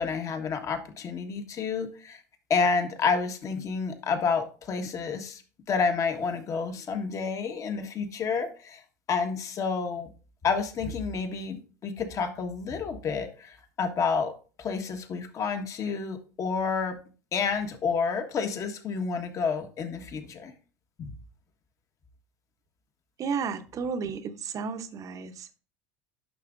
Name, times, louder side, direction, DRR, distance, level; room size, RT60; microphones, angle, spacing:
voice 1, 0.0-2.2 2.5-5.4 5.7-8.8 9.1-10.1 10.4-14.3 14.6-17.0 17.3-20.5 21.0-21.1, left 5 dB, 40° left, 1.4 m, -29 dB
voice 2, 23.2-25.6, right 5 dB, 40° right, 0.9 m, -33 dB
11.0 x 5.9 x 2.6 m
hypercardioid pair, 85°, 9 cm